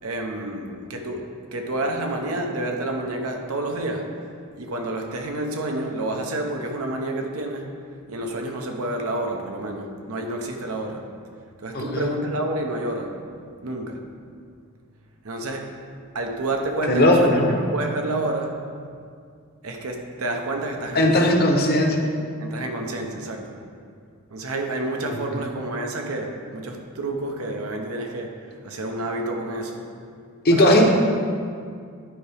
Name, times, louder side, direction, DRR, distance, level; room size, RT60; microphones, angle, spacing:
voice 1, 0.0-4.1 4.6-7.7 8.1-11.0 11.6-13.2 13.6-14.0 15.2-15.7 16.1-17.4 17.7-18.6 19.6-21.4 22.4-23.6 24.3-28.4 28.6-29.9 30.5-30.8, right 2 dB, 85° right, 3 dB, 0.9 m, -29 dB
voice 2, 11.7-12.1 16.9-17.5 20.9-22.1 25.1-25.4 30.4-30.9, left 1 dB, 45° left, 1 dB, 0.9 m, -18 dB
11.0 x 4.8 x 3.5 m, 2.2 s
head